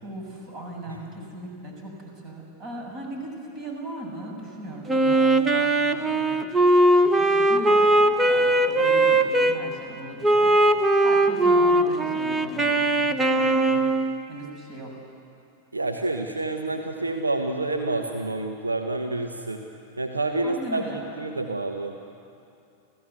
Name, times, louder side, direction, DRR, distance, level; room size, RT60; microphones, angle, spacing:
voice 1, 0.0-6.5 6.9-13.8 14.3-14.9 20.4-21.0, right 1 dB, 35° right, 1 dB, 6.8 m, -38 dB
Wind instrument woodwind instrument, 4.9-9.6 10.2-14.2, right 1 dB, 10° right, 1.2 m, -20 dB
voice 2, 15.7-19.6 20.0-20.8 21.2-22.0, right 2 dB, 80° right, 4 dB, 1.2 m, -28 dB
29.5 x 16.5 x 8.2 m, 2.6 s
figure-of-eight pair, 90°, 0 cm